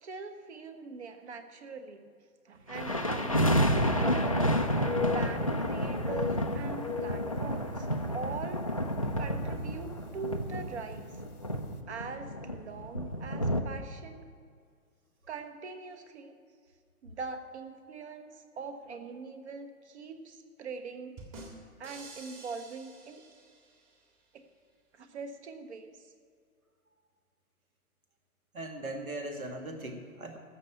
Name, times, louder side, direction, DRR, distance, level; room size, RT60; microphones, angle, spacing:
voice 1, 0.0-2.1 2.4-4.3 5.1-8.6 9.2-11.1 11.9-14.3 15.3-16.3 17.0-21.2 21.8-23.2 24.3-24.4 24.9-26.1, right 4 dB, 50° right, 8 dB, 1.4 m, -42 dB
sound 1, 2.7-13.6, equal, 25° left, 0.3 m, -30 dB
sound 2, 2.8-2.9 3.2-4.5 4.8-5.7 6.0-8.1 8.5-8.7 9.3-9.6 10.7-10.8 11.1-11.2, left 5 dB, 90° left, 1.0 m, -38 dB
sound 3, 21.2-24.0, right 2 dB, 25° right, 1.8 m, -49 dB
voice 2, 28.5-30.4, right 1 dB, 70° right, 4 dB, 2.0 m, -39 dB
14.0 x 6.6 x 8.5 m, 2.1 s
figure-of-eight pair, 140°, 44 cm